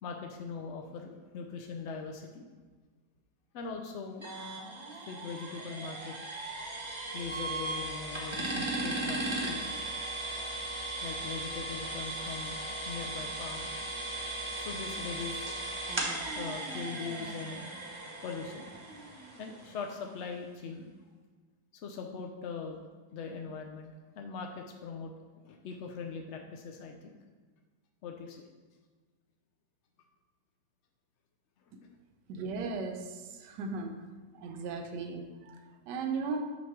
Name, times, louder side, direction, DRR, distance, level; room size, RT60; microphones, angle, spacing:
voice 1, 0.0-2.4 3.5-4.3 5.0-6.2 7.1-9.8 11.0-12.6 12.8-13.7 14.5-15.5 16.3-17.6 18.2-18.7 19.4-20.9 21.7-22.9 23.1-27.2 28.0-28.4 31.8-31.9, left 5 dB, 75° left, 3 dB, 0.6 m, -41 dB
sound 1, 4.2-19.9, right 2 dB, 30° right, 0.5 m, -37 dB
voice 2, 32.3-34.0 34.3-36.5, right 4 dB, 80° right, 4 dB, 1.3 m, -37 dB
6.7 x 3.1 x 5.8 m, 1.4 s
omnidirectional pair, 1.8 m